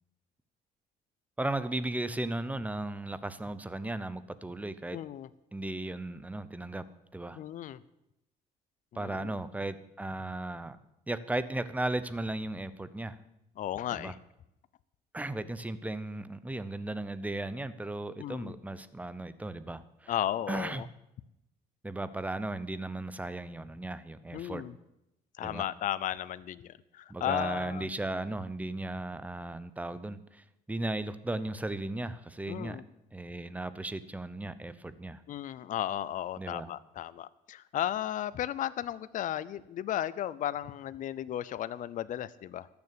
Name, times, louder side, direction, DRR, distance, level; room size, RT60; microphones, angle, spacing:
voice 1, 1.4-5.0 5.5-6.8 7.1-7.4 8.9-10.8 11.1-13.2 13.9-14.1 15.1-20.1 20.5-20.8 21.8-24.6 25.4-25.7 27.1-32.8 33.1-35.2 36.4-36.7, right 2 dB, 10° right, 14 dB, 0.7 m, -36 dB
voice 2, 4.9-5.3 7.4-7.8 8.9-9.3 13.6-14.2 18.2-18.6 20.1-20.9 24.3-24.7 25.4-27.9 32.5-32.8 35.3-42.7, left 11 dB, 50° left, 17 dB, 0.5 m, -35 dB
13.0 x 7.0 x 8.3 m, 0.87 s
cardioid pair, 110°, 17 cm